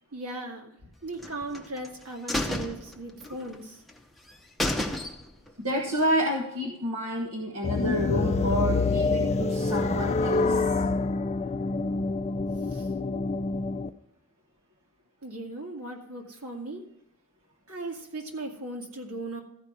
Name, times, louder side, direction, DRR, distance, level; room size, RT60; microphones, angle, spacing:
voice 1, 0.1-3.8 12.6-12.9 15.2-16.8 17.7-19.4, right 2 dB, 90° right, 1 dB, 2.3 m, -38 dB
sound 1, 1.2-1.9 2.3-3.6 3.9-4.0 4.3-4.4 4.6-5.5 5.8-5.9, left 1 dB, ahead, 0.8 m, -31 dB
voice 2, 5.6-10.8, equal, 70° right, -1 dB, 1.4 m, -29 dB
sound 2, 7.6-13.9, left 3 dB, 30° left, 0.4 m, -26 dB
14.5 x 5.2 x 6.1 m, 0.78 s
head